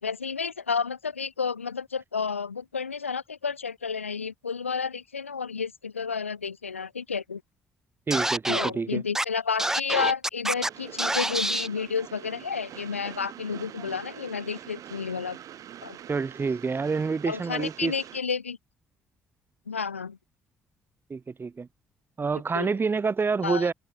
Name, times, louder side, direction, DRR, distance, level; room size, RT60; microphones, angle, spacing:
voice 1, 0.0-7.4 8.5-15.4 15.8-16.0 17.3-18.6 19.7-20.2 22.5-22.7 23.4-23.7, left 5 dB, 90° left, 4.8 m, -31 dB
Scratching (performance technique), 8.1-8.7 9.2-9.3 9.6-10.7 11.0-11.7, right 1 dB, 5° right, 1.0 m, -26 dB
voice 2, 8.1-9.0 16.1-17.9 21.1-21.7 22.2-23.7, right 4 dB, 35° right, 8.0 m, -27 dB
Train, 10.5-18.2, right 11 dB, 55° right, 4.8 m, -45 dB
open air
figure-of-eight pair, 45°, 7 cm